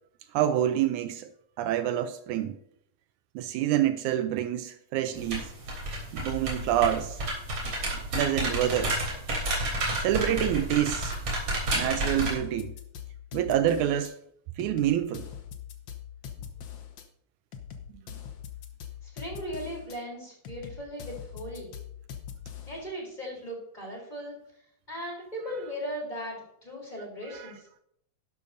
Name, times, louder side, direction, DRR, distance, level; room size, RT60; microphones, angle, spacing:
voice 1, 0.3-1.3 1.6-2.6 3.4-5.5 6.1-7.2 7.9-9.0 10.0-11.2 11.7-12.7 13.3-14.1 14.6-15.3 27.3-27.5, right 11 dB, 80° right, 2.0 m, -27 dB
sound 1, 5.2-12.3, right 1 dB, 50° right, 4.2 m, -31 dB
sound 2, 11.1-11.2 11.7-14.1 14.6-17.0 17.5-20.0 20.4-22.8, left 8 dB, 85° left, 1.0 m, -42 dB
voice 2, 19.0-21.7 22.7-24.4 24.9-27.6, equal, 15° left, 3.5 m, -38 dB
12.0 x 11.5 x 2.7 m
omnidirectional pair, 3.5 m